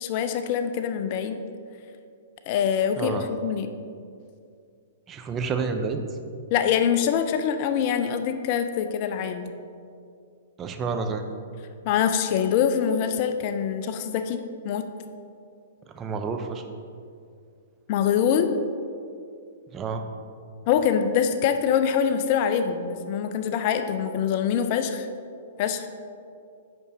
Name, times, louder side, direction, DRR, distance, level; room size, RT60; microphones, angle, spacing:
voice 1, 0.0-1.4 2.5-3.7 6.5-9.5 11.9-14.9 17.9-18.5 20.7-25.1 25.6-25.9, left 8 dB, 45° left, 8 dB, 0.4 m, -24 dB
voice 2, 3.0-3.3 5.1-6.0 10.6-11.2 15.9-16.6 19.7-20.0, right 5 dB, 25° right, 6 dB, 0.5 m, -29 dB
8.4 x 6.1 x 2.7 m, 2.4 s
hypercardioid pair, 120°, 0 cm